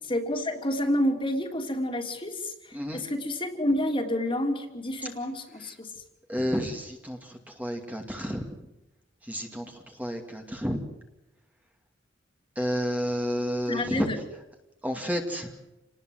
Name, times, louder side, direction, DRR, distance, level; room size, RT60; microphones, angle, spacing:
voice 1, 0.1-5.9 13.7-14.2, left 1 dB, 25° left, 4 dB, 3.2 m, -29 dB
voice 2, 6.3-8.6 9.2-10.8 12.6-14.1 14.8-15.5, equal, 10° right, 2 dB, 2.4 m, -31 dB
29.0 x 19.5 x 7.9 m, 0.96 s
head